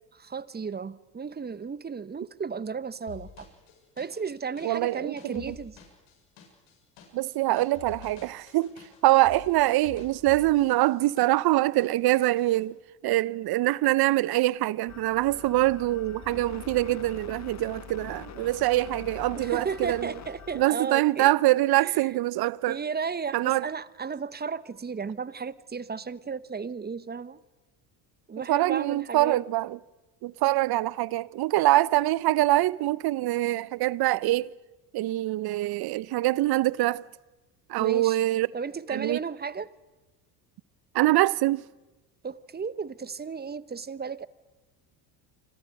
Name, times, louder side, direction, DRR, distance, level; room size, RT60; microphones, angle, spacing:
voice 1, 0.2-3.5 4.0-5.8 19.3-21.3 21.8-22.2 22.7-27.4 28.3-29.4 37.8-38.2 38.5-39.7 42.2-44.3, right 5 dB, 20° right, 0.9 m, -34 dB
sound 1, 3.1-11.5 11.8-12.6, left 9 dB, 70° left, 7.4 m, -49 dB
voice 2, 4.6-5.5 7.1-8.7 9.0-12.8 13.0-20.1 20.5-22.8 23.3-23.7 28.5-29.8 30.2-34.5 34.9-37.0 37.7-38.5 38.9-39.2 40.9-41.6, right 17 dB, 50° right, 0.8 m, -24 dB
sound 2, 14.9-20.7, left 8 dB, 35° left, 1.3 m, -44 dB
29.0 x 25.5 x 6.5 m
supercardioid pair, 80°, 47 cm